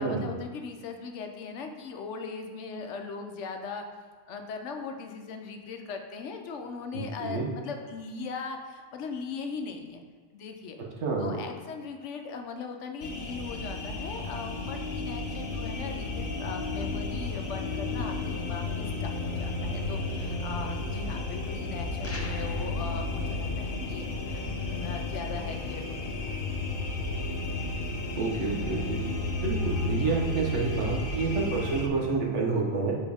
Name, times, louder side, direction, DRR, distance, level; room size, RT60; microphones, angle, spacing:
voice 1, 0.0-3.8 4.3-10.0 10.3-10.8 11.2-26.4, left 5 dB, 80° left, 5 dB, 1.0 m, -39 dB
voice 2, 6.9-7.5 11.0-11.4 28.2-29.0 29.4-33.0, right 4 dB, 75° right, -1 dB, 1.3 m, -29 dB
sound 1, 13.0-31.9, left 2 dB, 55° left, 0.8 m, -32 dB
sound 2, 22.0-22.7, left 1 dB, 20° left, 0.5 m, -41 dB
7.1 x 4.5 x 3.4 m, 1.4 s
omnidirectional pair, 1.2 m